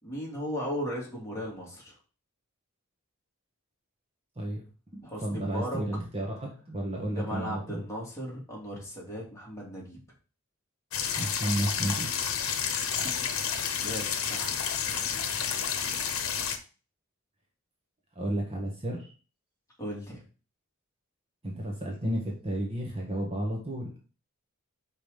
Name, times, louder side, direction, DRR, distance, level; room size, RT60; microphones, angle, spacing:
voice 1, 0.0-1.9 5.0-5.8 7.1-10.0 13.0-13.1 13.8-14.6 19.8-20.2, equal, 15° left, -4 dB, 2.8 m, -36 dB
voice 2, 4.9-7.8 11.2-12.1 14.9-15.1 18.1-19.1 21.4-24.0, right 1 dB, 30° right, -1 dB, 1.4 m, -32 dB
sound 1, 10.9-16.6, left 7 dB, 80° left, 0.9 m, -30 dB
5.3 x 5.0 x 5.1 m, 0.36 s
head